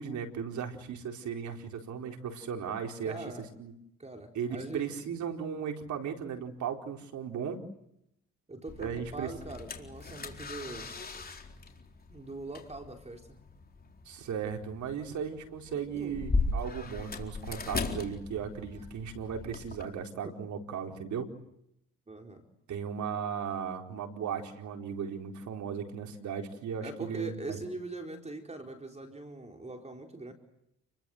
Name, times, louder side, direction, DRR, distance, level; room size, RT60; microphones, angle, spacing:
voice 1, 0.0-3.2 3.6-3.7 4.3-7.6 8.8-9.3 14.0-21.3 22.7-27.6, right 7 dB, 70° right, 3 dB, 4.5 m, -36 dB
voice 2, 3.0-3.4 4.0-4.9 8.5-11.1 12.1-13.4 15.9-16.2 18.8-18.9 20.2-20.3 22.1-22.4 26.8-30.3, right 2 dB, 20° right, 3 dB, 4.4 m, -42 dB
sound 1, 8.7-19.8, left 3 dB, 30° left, 4.2 m, -38 dB
30.0 x 22.5 x 8.0 m, 0.80 s
cardioid pair, 90°, 30 cm